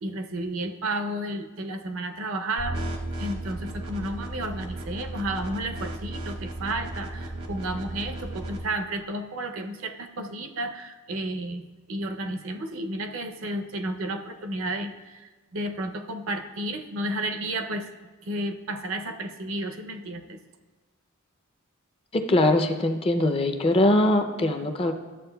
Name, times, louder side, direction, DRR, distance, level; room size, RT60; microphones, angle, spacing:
voice 1, 0.0-2.8 3.2-11.6 11.9-17.9 18.2-20.4, right 1 dB, 70° right, 7 dB, 0.6 m, -32 dB
sound 1, 2.6-8.6, right 2 dB, 90° right, 1.1 m, -35 dB
voice 2, 22.1-24.9, left 1 dB, 25° left, 5 dB, 0.5 m, -22 dB
12.5 x 7.3 x 2.3 m, 1.2 s
head